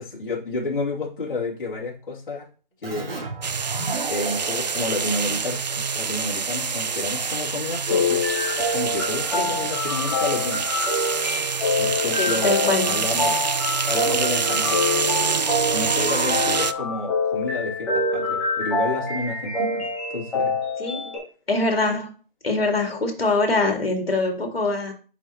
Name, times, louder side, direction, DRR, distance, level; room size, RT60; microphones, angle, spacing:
voice 1, 0.0-2.5 2.8-3.1 3.5-3.7 4.1-8.2 8.7-10.7 11.8-13.4 13.9-14.8 15.7-20.6, left 2 dB, 60° left, -5 dB, 2.7 m, -30 dB
Keyboard (musical), 2.8-6.2, right 3 dB, 85° right, 2.4 m, -34 dB
sound 1, 3.4-16.7, right 5 dB, 50° right, 0.4 m, -26 dB
sound 2, 7.9-21.2, left 3 dB, 5° left, 0.9 m, -26 dB
voice 2, 12.2-13.0 20.8-21.2 21.5-22.1 22.4-24.9, left 2 dB, 80° left, 4 dB, 2.3 m, -23 dB
7.9 x 5.0 x 3.0 m, 0.38 s
figure-of-eight pair, 165°, 29 cm